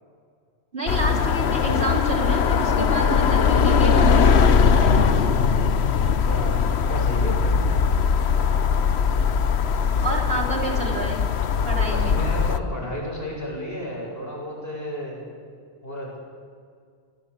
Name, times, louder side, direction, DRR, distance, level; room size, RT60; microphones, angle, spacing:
voice 1, 0.7-5.0 10.0-11.2 11.6-12.2, right 2 dB, 65° right, 0 dB, 4.5 m, -29 dB
sound 1, 0.9-12.6, left 6 dB, 80° left, 1.2 m, -20 dB
voice 2, 6.2-7.7 11.9-15.2 15.8-16.2, equal, 65° left, -1 dB, 8.1 m, -33 dB
30.0 x 20.0 x 8.6 m, 2.1 s
omnidirectional pair, 1.1 m